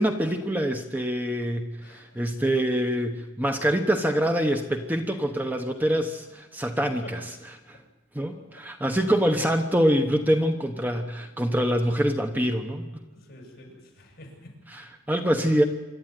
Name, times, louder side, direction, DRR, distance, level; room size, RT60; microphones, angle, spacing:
voice 1, 0.0-7.3 7.7-7.8 8.1-12.9 14.7-15.6, equal, 10° right, 5 dB, 1.1 m, -25 dB
voice 2, 1.8-2.2 7.0-7.1 8.5-8.6 13.1-14.5, left 1 dB, 50° left, 1 dB, 7.3 m, -47 dB
26.5 x 12.5 x 9.3 m, 1.1 s
head